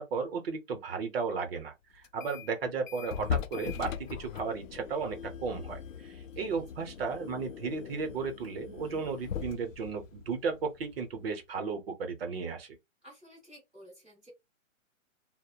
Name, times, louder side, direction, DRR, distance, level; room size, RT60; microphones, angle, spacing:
voice 1, 0.0-12.8, right 5 dB, 50° right, 0.7 m, -35 dB
sound 1, 2.0-2.6 2.9-11.3, left 8 dB, 75° left, 0.5 m, -40 dB
voice 2, 13.0-14.3, equal, ahead, 1.5 m, -53 dB
2.7 x 2.1 x 2.2 m
hypercardioid pair, 165°, 39 cm